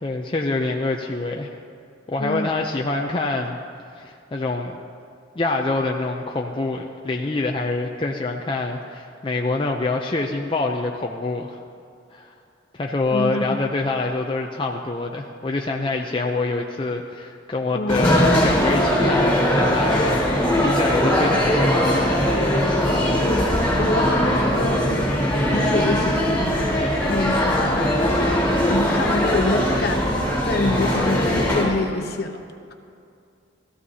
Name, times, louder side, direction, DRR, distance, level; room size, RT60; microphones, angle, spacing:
voice 1, 0.0-1.6 2.1-3.6 4.0-4.8 5.4-11.6 12.1-12.3 12.7-22.2, left 3 dB, 25° left, 1 dB, 0.5 m, -25 dB
voice 2, 2.2-2.5 13.1-13.6 17.7-18.0 23.2-25.1 25.5-26.7 27.1-28.1 28.5-30.2 30.4-32.4, left 2 dB, 55° left, 5 dB, 0.9 m, -26 dB
sound 1, 17.9-31.6, equal, 5° left, 3.7 m, -20 dB
17.5 x 14.0 x 2.8 m, 2.4 s
head